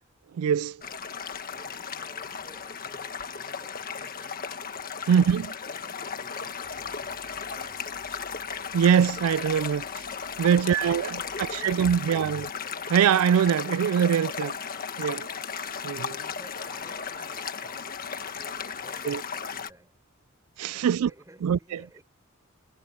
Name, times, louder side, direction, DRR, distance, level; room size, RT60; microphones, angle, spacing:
voice 1, 0.4-0.8 5.1-5.5 8.7-9.8 10.4-12.4 12.9-14.6 15.0-15.3 15.8-16.2 19.1-19.2 20.6-21.1 21.4-21.6, right 8 dB, 85° right, 0.3 m, -23 dB
sound 1, 0.8-19.7, left 6 dB, 45° left, 1.6 m, -36 dB
voice 2, 1.5-4.5 4.9-5.3 5.7-7.9 10.3-12.2 15.9-18.1 18.3-20.0 20.6-22.0, right 1 dB, 15° right, 6.4 m, -54 dB
sound 2, 6.6-11.7, equal, 35° right, 4.0 m, -57 dB
head